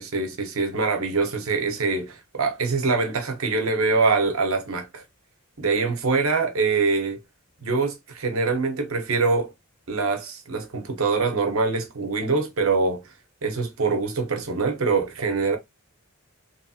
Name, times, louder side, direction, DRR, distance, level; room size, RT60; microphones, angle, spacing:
voice 1, 0.0-5.0 5.6-7.2 7.6-9.5 9.9-13.1 13.4-15.6, right 4 dB, 70° right, 0.9 m, -24 dB
3.1 x 2.8 x 2.4 m
head